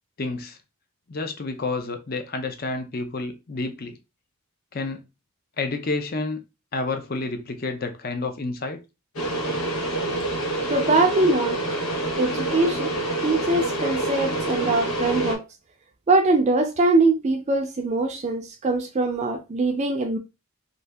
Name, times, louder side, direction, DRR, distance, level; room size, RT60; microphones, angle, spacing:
voice 1, 0.2-0.6 1.1-4.0 4.7-5.0 5.6-6.4 6.7-8.8, left 3 dB, 40° left, 0.5 m, -29 dB
sound 1, 9.2-15.4, right 1 dB, 85° left, 1.1 m, -27 dB
voice 2, 10.7-11.6 12.2-12.9 13.2-15.4 16.1-20.2, right 2 dB, 30° right, 0.4 m, -22 dB
2.7 x 2.6 x 3.3 m
head